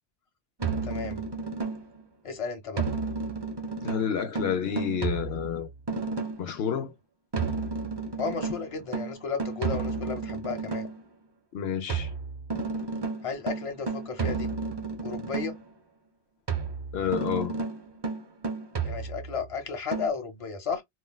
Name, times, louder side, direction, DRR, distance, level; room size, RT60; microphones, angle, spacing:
sound 1, 0.6-2.0 2.8-6.6 7.3-11.0 11.9-15.7 16.5-19.4 19.9-20.1, right 4 dB, 30° right, 0.5 m, -32 dB
voice 1, 0.8-1.2 2.2-2.8 8.2-10.9 13.2-14.5 15.0-15.6 18.8-20.8, left 5 dB, 35° left, 0.8 m, -33 dB
voice 2, 3.8-5.7 6.4-6.9 11.5-12.1 16.9-17.6, left 8 dB, 75° left, 0.8 m, -29 dB
4.3 x 2.1 x 2.2 m
omnidirectional pair, 1.1 m